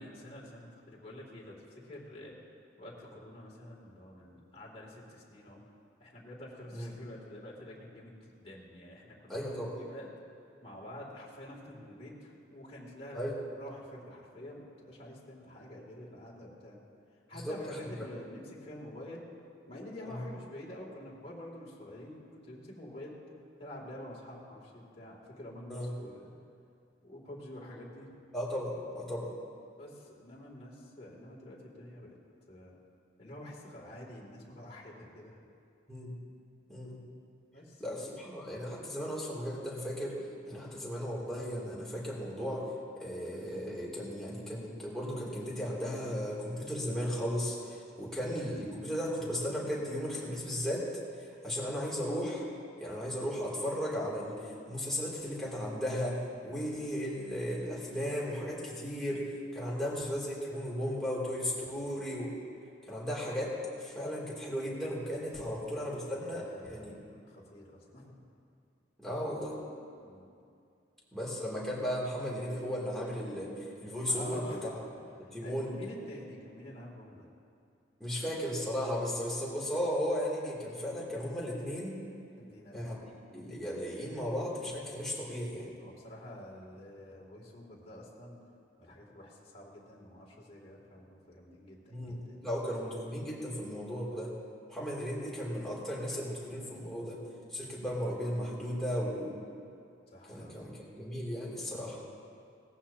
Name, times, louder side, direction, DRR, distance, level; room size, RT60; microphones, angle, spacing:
voice 1, 0.0-2.3 2.8-5.6 6.0-10.1 10.6-16.8 17.3-19.3 19.6-23.2 23.6-26.3 27.0-28.2 29.8-32.2 32.5-32.8 33.2-35.4 37.5-38.1 48.0-48.2 65.2-65.4 65.8-68.3 70.0-70.2 74.1-74.7 75.4-77.3 82.4-82.9 85.8-88.4 88.8-92.5 100.1-100.6, left 1 dB, 30° left, -5 dB, 2.7 m, -48 dB
voice 2, 9.3-9.8 13.1-13.3 17.3-17.9 20.1-20.2 25.7-25.9 28.3-29.3 35.9-36.1 36.7-37.0 37.8-40.1 40.5-42.6 43.0-50.8 51.2-52.4 52.8-62.3 62.9-66.9 69.0-69.5 71.1-74.4 75.3-75.7 78.0-82.0 82.7-82.9 83.3-85.7 91.9-94.3 94.7-97.2 97.5-99.4 100.3-102.0, equal, ahead, -6 dB, 2.8 m, -35 dB
19.0 x 14.5 x 2.9 m, 2.4 s
head